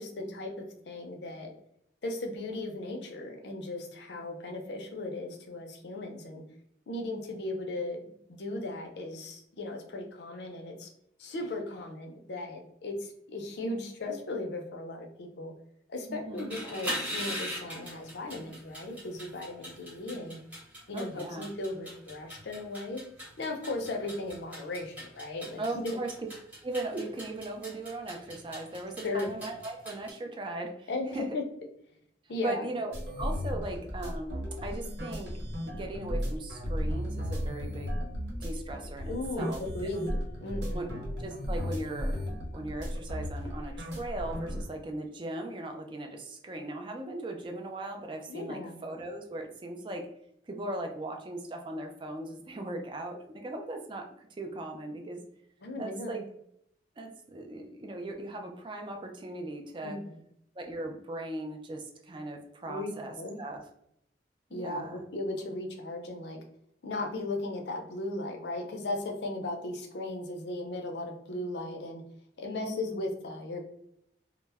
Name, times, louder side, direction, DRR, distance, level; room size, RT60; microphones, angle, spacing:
voice 1, 0.0-1.5 2.0-6.4 6.9-8.0 8.4-10.9 11.2-15.5 15.9-20.4 20.9-23.0 23.4-26.0 29.0-29.3 30.9-31.5 32.3-32.7 39.1-41.0 48.3-48.8 55.6-56.2 59.8-60.0 62.7-63.4 64.5-66.4 66.8-72.0 72.4-73.6, left 2 dB, 80° left, 3 dB, 0.5 m, -36 dB
voice 2, 16.1-16.6 20.9-21.5 25.6-26.1 26.6-31.3 32.4-35.3 35.7-37.9 38.4-39.6 40.7-40.9 41.2-42.2 42.5-50.1 50.5-55.2 55.8-56.2 57.0-60.0 60.6-63.6 64.5-65.0 72.5-73.0, right 2 dB, 30° right, 3 dB, 0.3 m, -38 dB
sound 1, 16.3-30.1, equal, 10° right, 0.9 m, -41 dB
sound 2, 32.9-44.7, equal, 85° right, 1.1 m, -35 dB
2.1 x 2.0 x 3.4 m, 0.74 s
head